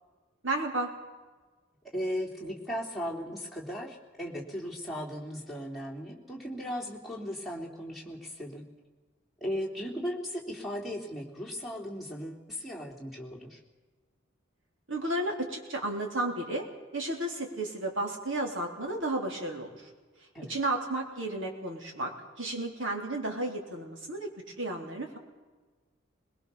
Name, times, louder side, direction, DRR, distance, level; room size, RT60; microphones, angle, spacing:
voice 1, 0.4-0.9 14.9-16.7 16.9-19.9 20.5-24.3 24.6-25.2, right 2 dB, 70° right, 2 dB, 3.8 m, -33 dB
voice 2, 1.8-8.6 9.4-13.6 20.3-20.5, equal, ahead, -4 dB, 3.5 m, -37 dB
22.5 x 21.0 x 7.1 m, 1.3 s
head